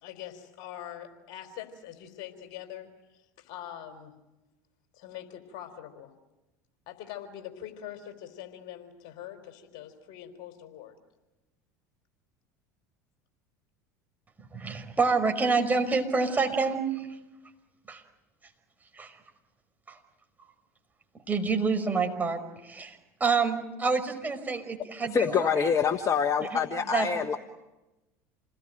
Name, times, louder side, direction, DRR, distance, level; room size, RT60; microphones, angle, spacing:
voice 1, 0.0-4.1 4.9-6.1 6.9-11.0, left 11 dB, 60° left, 7 dB, 4.1 m, -43 dB
voice 2, 14.4-17.2 17.9-18.0 18.9-19.2 19.9-20.0 21.3-25.7 26.4-26.6 26.9-27.1, right 4 dB, 20° right, 4 dB, 5.5 m, -28 dB
voice 3, 25.1-27.4, left 6 dB, 35° left, 7 dB, 1.4 m, -26 dB
28.5 x 19.5 x 9.2 m, 1.0 s
hypercardioid pair, 80°, 9 cm